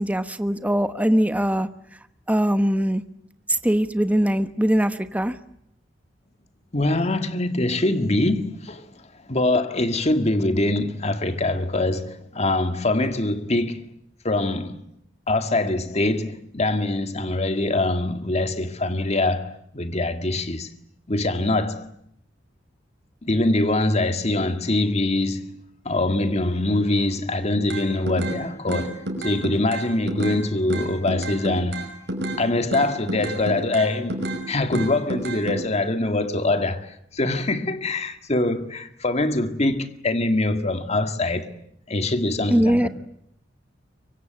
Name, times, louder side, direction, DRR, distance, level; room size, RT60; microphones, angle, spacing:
voice 1, 0.0-1.7 2.3-3.0 3.6-5.3 42.5-42.9, equal, 10° right, 1.1 m, -21 dB
voice 2, 6.7-13.9 14.2-14.8 15.3-20.7 21.1-21.9 23.2-25.6 25.9-32.0 32.4-36.9 37.1-41.5 41.9-42.9, left 2 dB, 35° left, 2.0 m, -24 dB
sound 1, 27.7-28.4 28.7-30.4 30.7-32.4 32.7-34.4 34.7-35.6, right 1 dB, 65° right, 5.9 m, -29 dB
24.5 x 24.5 x 9.2 m
head